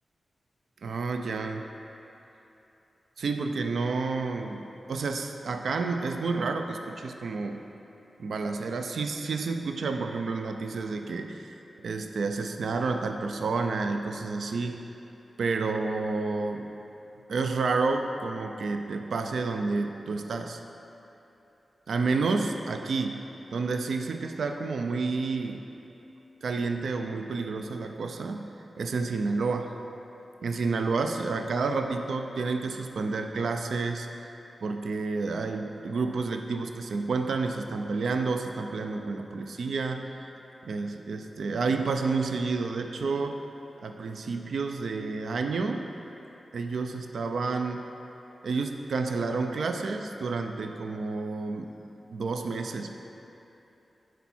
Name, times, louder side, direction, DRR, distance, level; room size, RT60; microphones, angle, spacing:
voice 1, 0.8-1.7 3.2-7.6 8.2-11.5 11.8-14.8 15.4-16.7 17.3-20.6 21.9-23.2 23.5-25.6 26.4-28.5 28.8-29.7 30.4-34.3 34.6-40.1 40.6-43.4 43.8-45.9 46.5-47.9 48.4-51.7 52.1-52.9, right 4 dB, 85° right, 5 dB, 0.4 m, -30 dB
10.0 x 4.6 x 4.2 m, 3.0 s
cardioid pair, 70°, 0 cm